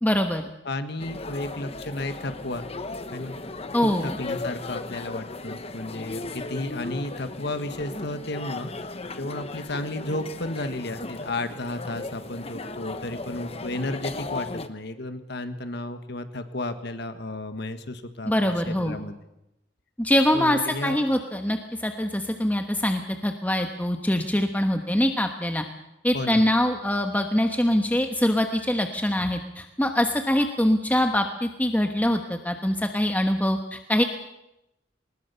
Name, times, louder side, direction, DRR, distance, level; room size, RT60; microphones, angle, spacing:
voice 1, 0.0-0.5 3.7-4.1 18.3-19.0 20.0-25.6 26.0-34.0, left 1 dB, 10° left, 5 dB, 1.2 m, -24 dB
voice 2, 0.6-2.7 3.1-3.4 3.8-8.7 9.1-19.2 20.3-21.0 26.1-26.5, left 2 dB, 65° left, 9 dB, 1.5 m, -33 dB
sound 1, 1.0-14.7, left 2 dB, 35° left, 1.1 m, -36 dB
21.0 x 20.0 x 6.9 m, 0.88 s
head